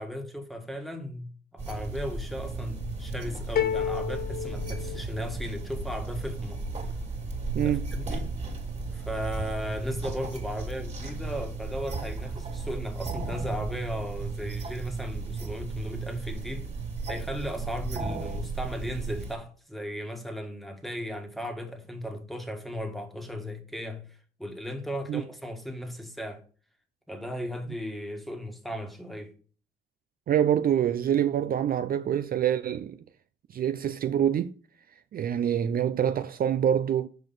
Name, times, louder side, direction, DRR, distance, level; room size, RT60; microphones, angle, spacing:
voice 1, 0.0-6.6 7.6-8.3 8.9-16.7 17.1-24.0 24.4-26.4 27.1-29.3, equal, ahead, 1.5 m, -36 dB
sound 1, 1.6-19.3, right 3 dB, 30° right, 2.3 m, -35 dB
sound 2, 3.6-5.6, left 9 dB, 50° left, 0.6 m, -31 dB
voice 2, 7.5-7.9 25.1-25.2 30.3-33.0 33.5-34.5 35.1-37.1, right 9 dB, 50° right, 0.4 m, -25 dB
6.2 x 4.8 x 4.0 m
cardioid pair, 90°, 20 cm